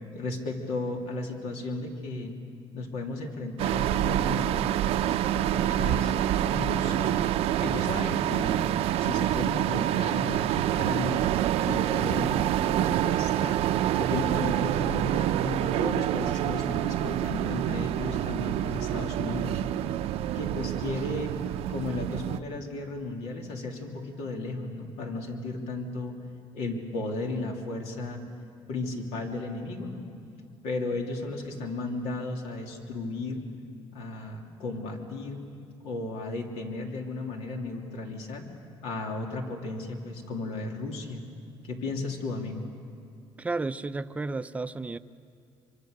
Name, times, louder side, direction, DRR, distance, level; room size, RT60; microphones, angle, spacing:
voice 1, 0.1-2.4 2.7-4.6 5.3-6.2 6.5-7.2 7.6-8.7 9.0-11.3 11.6-13.7 13.9-19.6 20.3-21.3 21.7-26.2 26.5-28.2 28.7-30.1 30.6-33.4 33.9-35.4 35.8-38.5 38.8-41.2 41.6-42.6, left 2 dB, 80° left, 2 dB, 3.0 m, -34 dB
sound 1, 3.6-22.4, right 12 dB, 70° right, 0.6 m, -27 dB
voice 2, 43.4-45.0, right 3 dB, 15° right, 12 dB, 0.5 m, -32 dB
26.0 x 25.0 x 6.7 m, 2.4 s
cardioid pair, 135°, 11 cm